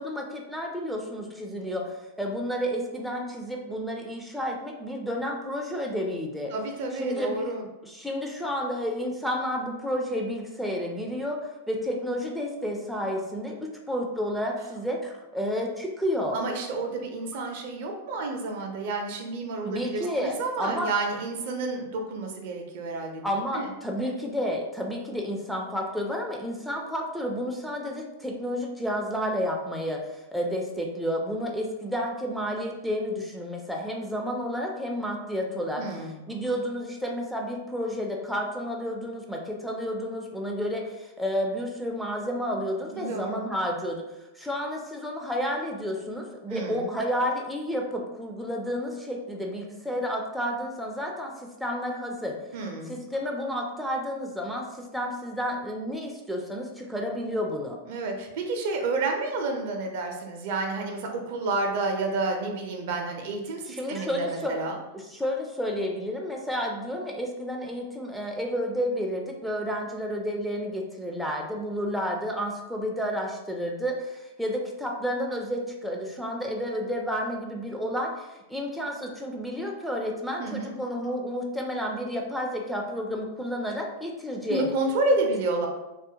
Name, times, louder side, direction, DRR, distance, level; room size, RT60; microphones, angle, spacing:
voice 1, 0.0-6.5 7.0-7.6 7.8-11.4 11.7-16.4 19.6-20.9 23.2-35.8 36.3-44.1 44.3-51.3 51.6-52.4 52.9-57.8 63.7-64.6 65.1-84.7, equal, ahead, 0 dB, 0.3 m, -31 dB
voice 2, 6.5-7.6 16.3-23.2 23.5-23.7 35.8-36.2 42.9-43.4 46.5-46.9 52.5-52.9 57.9-64.8 80.4-80.7 84.5-85.7, right 3 dB, 60° right, 3 dB, 0.5 m, -30 dB
2.3 x 2.1 x 2.8 m, 1.0 s
hypercardioid pair, 125°, 0 cm